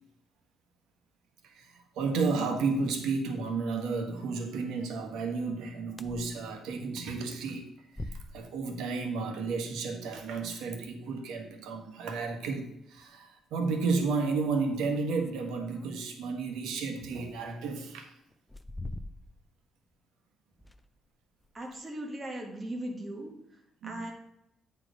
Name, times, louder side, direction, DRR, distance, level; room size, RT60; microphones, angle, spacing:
voice 1, 1.4-18.1 23.8-24.1, right 4 dB, 90° right, 4 dB, 1.3 m, -32 dB
sound 1, 6.0-6.3 6.7-6.8 7.9-8.6 11.4-11.5 12.6-12.7 13.0-13.1 13.7-13.8 14.9-16.3 17.3-17.4 18.3-19.5 19.8-19.9 20.5-21.1 21.4-21.8, left 2 dB, 5° left, 0.4 m, -43 dB
voice 2, 21.5-23.3 23.8-24.1, right 1 dB, 15° right, 1 dB, 1.4 m, -38 dB
9.1 x 4.6 x 5.0 m, 0.82 s
cardioid pair, 165°, 0 cm